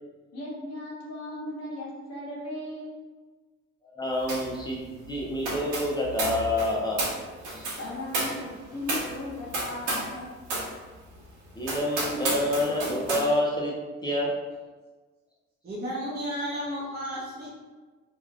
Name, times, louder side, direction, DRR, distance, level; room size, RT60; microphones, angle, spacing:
voice 1, 0.3-3.0 7.8-10.3, left 1 dB, 55° left, -5 dB, 0.9 m, -37 dB
voice 2, 3.8-7.0 7.4-7.8 11.5-13.7 14.0-14.3, left 1 dB, 15° left, -4 dB, 0.7 m, -28 dB
sound 1, 4.3-4.6 4.8-10.2 10.5-10.7 11.2-11.3 11.6-13.3, right 2 dB, 80° right, 1.0 m, -32 dB
voice 3, 15.6-17.6, equal, 30° right, -7 dB, 0.7 m, -33 dB
2.9 x 2.4 x 2.4 m, 1.3 s
cardioid pair, 90°, 30 cm